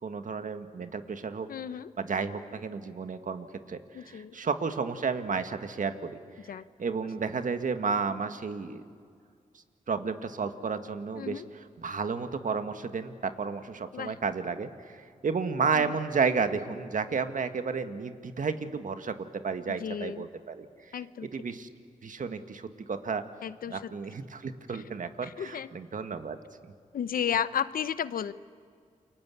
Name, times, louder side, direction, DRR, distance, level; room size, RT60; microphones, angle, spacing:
voice 1, 0.0-1.5 2.0-6.2 6.8-8.8 9.9-19.1 19.4-21.0 21.3-21.7 22.0-23.2 23.7-26.4, right 5 dB, 65° right, 8 dB, 1.8 m, -32 dB
voice 2, 1.5-1.9 3.9-4.3 6.5-6.6 11.2-11.5 13.9-14.2 15.7-15.9 19.7-20.2 20.9-21.3 23.4-23.9 24.7-24.8 25.2-25.7 26.9-28.3, left 8 dB, 85° left, 15 dB, 0.8 m, -33 dB
29.0 x 24.0 x 8.5 m, 2.1 s
cardioid pair, 70°, 14 cm